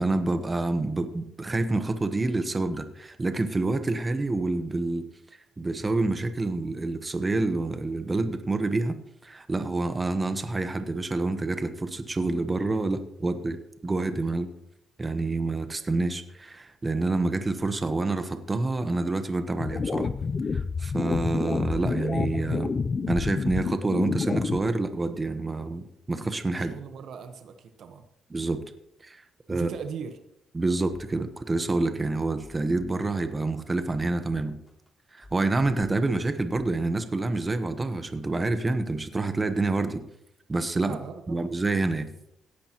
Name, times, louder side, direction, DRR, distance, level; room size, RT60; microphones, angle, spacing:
voice 1, 0.0-5.1 5.6-9.0 9.2-14.5 15.0-20.1 20.5-22.7 23.1-26.7 28.3-28.6 29.0-29.2 29.5-29.7 30.5-34.5 35.1-40.0 40.5-41.0 41.3-42.1, right 2 dB, 25° right, 9 dB, 1.1 m, -27 dB
sound 1, 19.6-24.6, left 5 dB, 40° left, 0.6 m, -28 dB
voice 2, 26.6-28.0 29.5-30.2 40.7-41.6, right 6 dB, 70° right, 8 dB, 1.2 m, -39 dB
sound 2, 31.7-31.8 32.2-33.2 33.7-34.9 35.2-36.2 36.5-36.8, left 1 dB, 15° left, 2.8 m, -51 dB
17.0 x 10.0 x 3.0 m, 0.80 s
cardioid pair, 90°, 0 cm